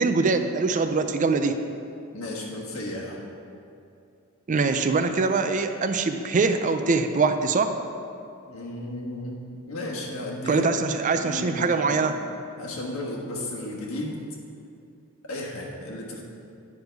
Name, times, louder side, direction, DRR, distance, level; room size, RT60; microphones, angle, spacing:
voice 1, 0.0-1.6 4.5-7.7 10.5-12.2, right 4 dB, 35° right, 8 dB, 0.4 m, -23 dB
voice 2, 2.1-3.2 8.5-10.6 11.1-12.0 12.6-14.2 15.3-16.2, left 1 dB, 80° left, -2 dB, 1.4 m, -34 dB
9.3 x 5.3 x 4.6 m, 2.5 s
head